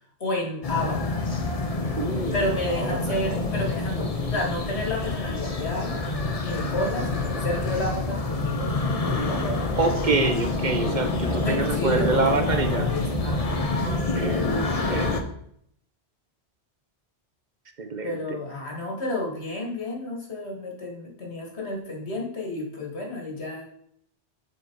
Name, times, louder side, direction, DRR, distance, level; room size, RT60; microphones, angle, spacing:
voice 1, 0.2-1.3 2.3-6.0 6.4-9.8 10.3-10.5 11.3-13.8 18.0-23.7, left 1 dB, 80° left, 0 dB, 2.2 m, -31 dB
sound 1, 0.6-15.2, left 3 dB, 35° left, 0.9 m, -27 dB
voice 2, 1.9-3.2 9.7-12.9 13.8-14.5 14.9-15.1 17.8-18.4, right 3 dB, 45° right, 7 dB, 0.9 m, -27 dB
sound 2, 3.9-11.0, right 1 dB, 85° right, 2.2 m, -42 dB
7.0 x 6.3 x 4.6 m, 0.68 s
omnidirectional pair, 1.1 m